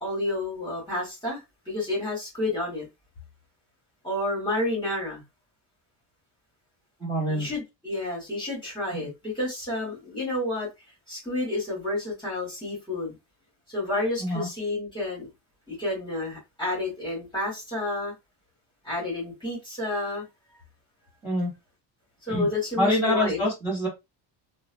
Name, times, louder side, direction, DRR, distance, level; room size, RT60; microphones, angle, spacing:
voice 1, 0.0-1.4 1.6-2.9 4.0-5.2 7.3-10.7 11.1-13.1 13.7-15.3 15.7-18.1 18.8-20.2 22.2-23.4, left 2 dB, 10° left, 1.5 m, -30 dB
voice 2, 7.0-7.5 8.9-9.1 14.2-14.5 21.2-21.5 22.3-22.5 22.8-23.9, left 1 dB, 5° right, 1.4 m, -26 dB
2.7 x 2.2 x 2.6 m
cardioid pair, 170°, 42 cm